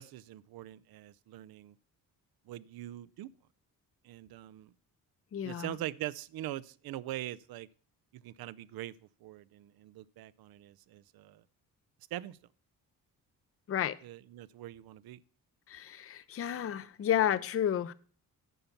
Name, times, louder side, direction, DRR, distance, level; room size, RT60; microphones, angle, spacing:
voice 1, 0.0-1.8 2.5-3.3 4.0-4.7 5.4-7.7 8.1-8.9 9.2-11.4 12.1-12.4 14.0-15.2, right 14 dB, 90° right, 0.5 m, -42 dB
voice 2, 5.3-5.8 13.7-14.0 15.7-17.9, left 10 dB, 40° left, 0.6 m, -31 dB
9.2 x 5.7 x 7.0 m
cardioid pair, 120°, 35 cm